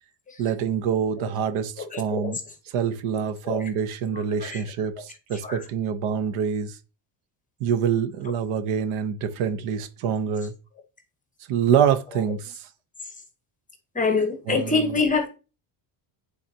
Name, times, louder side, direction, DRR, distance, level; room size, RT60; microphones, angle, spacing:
voice 1, 0.4-2.4 2.7-6.8 7.6-10.5 11.5-12.6 14.5-14.9, right 7 dB, 75° right, 0.9 m, -26 dB
voice 2, 1.8-2.3 3.4-3.7 4.4-4.6 5.3-5.6 13.9-15.4, left 4 dB, 15° left, 0.9 m, -25 dB
8.5 x 4.0 x 2.7 m
cardioid pair, 155°, 50 cm